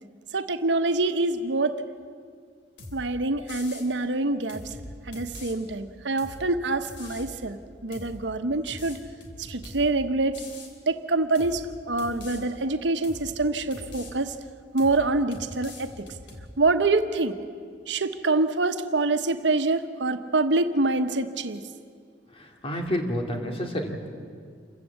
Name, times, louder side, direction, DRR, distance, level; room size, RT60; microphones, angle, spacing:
voice 1, 0.3-1.8 2.9-4.6 5.1-9.0 9.5-10.4 10.9-14.3 14.7-16.0 16.6-17.4 17.9-21.6, right 2 dB, 85° right, 8 dB, 1.1 m, -25 dB
sound 1, 2.8-3.1 3.5-3.9 4.5-5.6 6.2-6.5 6.9-7.3 7.9-8.2 8.7-9.9 10.3-10.7 11.4-11.6 12.0-12.4 13.0-13.3 13.7-14.1 14.8-15.1 15.3-16.5, left 1 dB, 90° left, 3.2 m, -42 dB
voice 2, 22.3-24.1, equal, 35° left, 2 dB, 2.6 m, -30 dB
27.5 x 15.5 x 8.3 m, 2.1 s
head